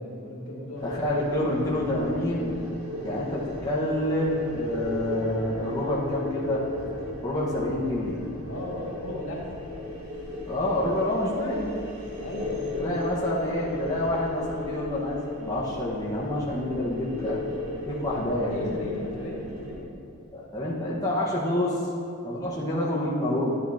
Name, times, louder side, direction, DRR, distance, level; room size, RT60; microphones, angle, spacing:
voice 1, 0.0-1.1 7.5-7.6 8.5-9.9 12.2-13.2 18.5-19.8, left 1 dB, 70° left, -4 dB, 2.2 m, -36 dB
voice 2, 0.8-2.6 3.0-6.6 7.2-8.2 10.5-11.8 12.8-17.4 17.9-18.7 20.3-21.8 22.2-23.5, left 1 dB, 15° left, -6 dB, 1.3 m, -28 dB
sound 1, 0.8-19.8, left 2 dB, 85° right, 1.7 m, -36 dB
12.0 x 9.2 x 2.8 m, 2.7 s
head